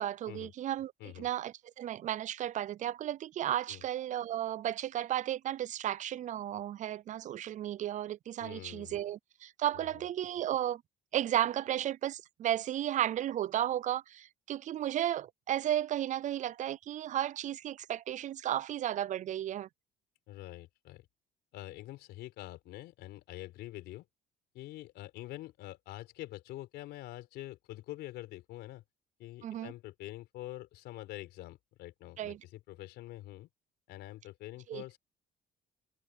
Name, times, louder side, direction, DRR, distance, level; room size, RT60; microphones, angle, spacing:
voice 1, 0.0-0.9 1.2-10.8 11.1-19.7 29.4-29.7 32.2-32.4 34.7-34.8, right 12 dB, 45° right, 0.4 m, -34 dB
voice 2, 8.4-9.0 9.7-10.0 20.3-21.1 21.5-24.0 24.5-28.8 29.2-33.5 33.9-35.0, left 16 dB, 85° left, 4.5 m, -46 dB
cardioid pair, 110°, 17 cm